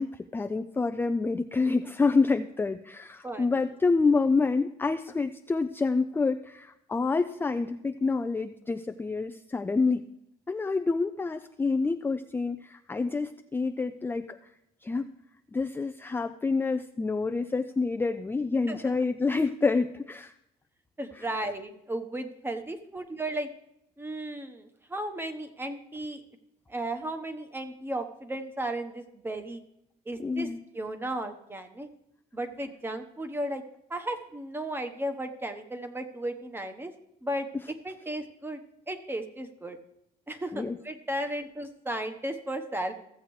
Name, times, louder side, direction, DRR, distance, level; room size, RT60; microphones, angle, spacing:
voice 1, 0.0-10.1 10.5-14.4 14.8-15.1 15.5-20.3 21.1-21.3 30.2-30.6 40.5-40.8, left 4 dB, 10° left, 8 dB, 0.4 m, -27 dB
voice 2, 21.0-23.5 24.0-26.2 26.7-29.6 30.1-30.5 30.7-31.9 32.3-33.6 33.9-36.9 37.2-38.6 38.9-39.8 40.3-42.9, right 1 dB, 15° right, 7 dB, 1.0 m, -35 dB
15.5 x 7.3 x 3.2 m, 0.80 s
cardioid pair, 110°, 17 cm